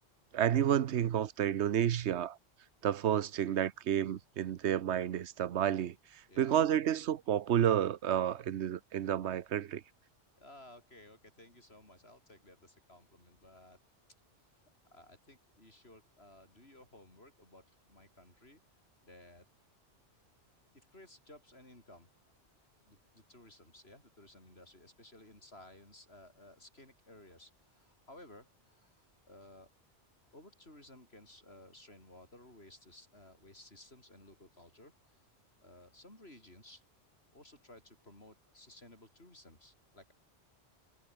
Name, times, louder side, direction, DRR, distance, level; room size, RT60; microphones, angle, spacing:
voice 1, 0.3-2.4 2.8-9.8, right 10 dB, 75° right, 1.0 m, -30 dB
voice 2, 10.4-13.8 14.9-18.6 19.0-19.4 20.7-22.1 22.9-29.7 30.3-35.2 35.6-36.8 37.3-40.1, left 1 dB, 60° left, 6.9 m, -57 dB
omnidirectional pair, 1.2 m